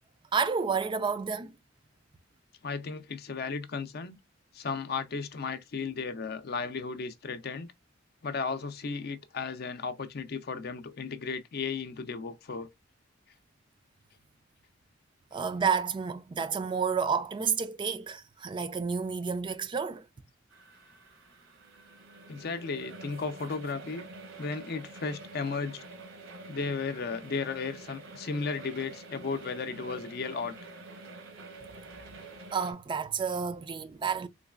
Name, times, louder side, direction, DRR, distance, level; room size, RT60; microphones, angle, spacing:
voice 1, 0.3-1.5 15.3-20.1 32.5-34.3, right 6 dB, 25° right, 0.3 m, -30 dB
voice 2, 2.6-4.2 4.5-7.7 8.2-12.7 22.3-24.1 24.4-25.8 26.5-30.6, left 4 dB, 55° left, 0.5 m, -35 dB
sound 1, 20.5-32.7, right 2 dB, 75° right, 1.0 m, -47 dB
3.9 x 3.1 x 2.3 m
head